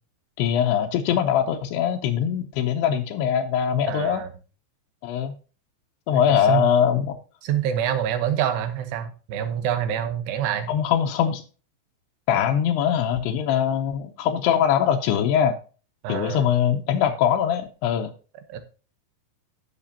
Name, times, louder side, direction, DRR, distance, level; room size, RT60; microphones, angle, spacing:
voice 1, 0.4-4.2 5.0-5.3 6.1-7.2 10.7-11.4 12.3-15.6 16.1-18.1, left 9 dB, 85° left, 3 dB, 2.8 m, -22 dB
voice 2, 3.9-4.3 6.1-6.7 7.4-10.7 16.0-16.5 18.5-18.6, right 9 dB, 85° right, 8 dB, 3.2 m, -26 dB
15.0 x 6.1 x 2.8 m, 0.36 s
omnidirectional pair, 4.7 m